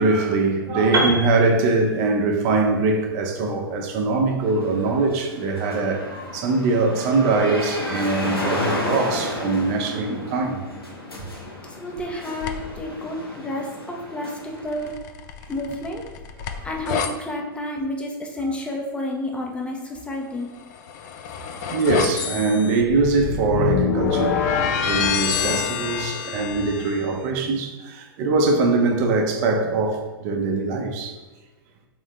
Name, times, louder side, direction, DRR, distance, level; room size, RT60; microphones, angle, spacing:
voice 1, 0.0-10.6 11.2-11.3 12.0-12.1 16.4-16.7 18.4-18.5 21.4-24.5 24.8-31.1, right 3 dB, 45° right, 3 dB, 0.7 m, -22 dB
Piano, 0.9-4.9, right 1 dB, 70° right, 0.9 m, -29 dB
sound 1, 4.4-14.9, left 1 dB, 90° left, 0.9 m, -32 dB
voice 2, 11.8-14.9 15.5-16.1 16.6-20.5, left 1 dB, 10° left, 0 dB, 0.6 m, -30 dB
sound 2, 12.4-12.8 14.7-17.1 20.6-27.0, left 7 dB, 50° left, 0.4 m, -26 dB
3.6 x 3.0 x 3.4 m, 1.2 s
figure-of-eight pair, 100°, 12 cm